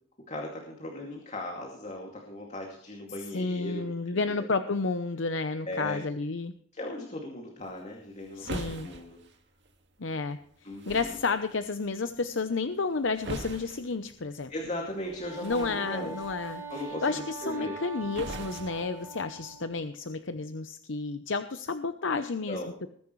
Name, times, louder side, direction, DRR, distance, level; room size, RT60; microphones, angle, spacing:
voice 1, 0.3-4.5 5.7-6.0 6.7-9.2 10.6-11.1 14.5-16.2 16.7-17.8 22.5-22.7, left 1 dB, 40° left, 0 dB, 2.5 m, -38 dB
voice 2, 3.3-6.5 8.3-8.9 10.0-14.5 15.4-22.6, left 4 dB, 70° left, 9 dB, 0.8 m, -31 dB
sound 1, 7.6-19.6, right 2 dB, 65° right, 2.0 m, -45 dB
Wind instrument woodwind instrument, 15.1-19.8, right 3 dB, 15° right, 5.9 m, -42 dB
20.5 x 10.5 x 3.2 m, 0.62 s
head